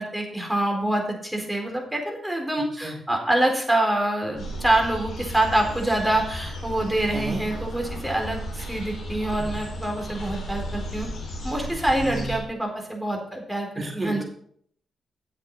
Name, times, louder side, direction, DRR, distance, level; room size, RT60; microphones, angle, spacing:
voice 1, 0.0-11.1 11.4-14.2, right 1 dB, 10° right, 1 dB, 4.2 m, -26 dB
sound 1, 4.4-12.4, equal, 70° left, 3.6 m, -34 dB
voice 2, 7.1-7.4 12.0-12.4 13.8-14.2, right 2 dB, 45° right, 1 dB, 1.8 m, -32 dB
9.4 x 7.9 x 5.5 m, 0.63 s
hypercardioid pair, 40°, 0 cm